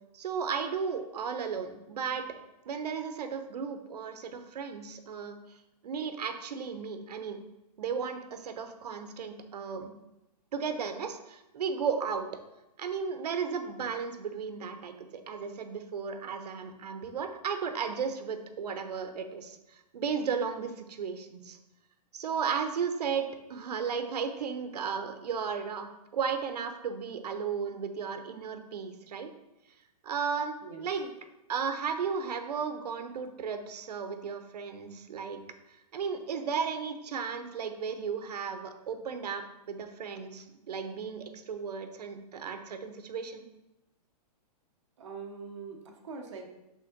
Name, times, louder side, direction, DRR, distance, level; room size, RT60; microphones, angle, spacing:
voice 1, 0.1-2.3 2.7-5.4 5.8-7.4 7.8-9.9 10.5-12.3 12.8-21.6 22.1-29.3 30.0-31.1 31.5-35.4 35.9-43.4, right 6 dB, 80° right, 8 dB, 0.8 m, -34 dB
voice 2, 30.6-31.0 45.0-46.5, right 4 dB, 45° right, 1 dB, 1.0 m, -43 dB
5.6 x 3.6 x 5.0 m, 0.94 s
hypercardioid pair, 180°, 20 cm